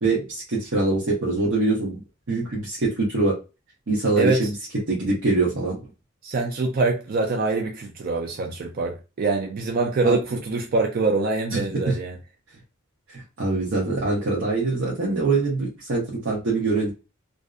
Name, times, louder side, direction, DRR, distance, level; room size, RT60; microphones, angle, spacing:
voice 1, 0.0-2.0 2.3-3.3 3.9-4.5 4.9-5.8 10.0-10.2 11.5-12.0 13.1-16.9, right 3 dB, 70° right, 0.8 m, -24 dB
voice 2, 4.2-4.5 6.2-12.2, right 3 dB, 45° right, 0.4 m, -24 dB
2.5 x 2.0 x 2.3 m
head